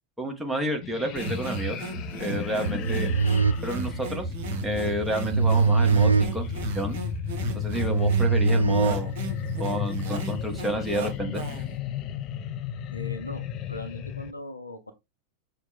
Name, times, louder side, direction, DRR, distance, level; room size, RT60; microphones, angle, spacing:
voice 1, 0.2-1.8 2.2-3.1 3.6-4.3 4.6-6.5 6.7-7.0 7.5-9.1 9.6-11.4, equal, 5° right, 1.2 m, -30 dB
sound 1, 0.8-14.3, left 9 dB, 35° left, 0.5 m, -34 dB
sound 2, 1.2-11.8, right 3 dB, 50° right, 1.1 m, -35 dB
sound 3, 2.6-9.5, right 5 dB, 75° right, 0.4 m, -24 dB
voice 2, 12.9-14.9, left 2 dB, 80° left, 0.6 m, -39 dB
5.9 x 2.2 x 3.9 m
figure-of-eight pair, 90°, 0 cm